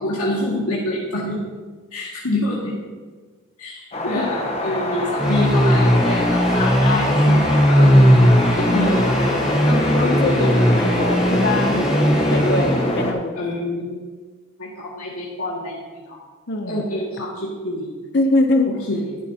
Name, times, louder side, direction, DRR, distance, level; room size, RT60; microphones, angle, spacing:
voice 1, 0.0-1.4 1.9-2.7 3.6-7.4 7.7-8.0 8.5-9.1 13.3-14.0 14.6-16.2 16.7-17.9 18.9-19.2, left 1 dB, 90° left, -6 dB, 2.0 m, -26 dB
sound 1, 3.9-13.1, left 1 dB, 30° left, 1.0 m, -24 dB
sound 2, 5.2-13.0, equal, 5° right, 1.2 m, -18 dB
voice 2, 9.6-11.9 12.3-13.3 16.5-16.8 18.1-18.8, left 2 dB, 50° left, 5 dB, 0.7 m, -23 dB
12.5 x 10.0 x 2.8 m, 1.4 s
head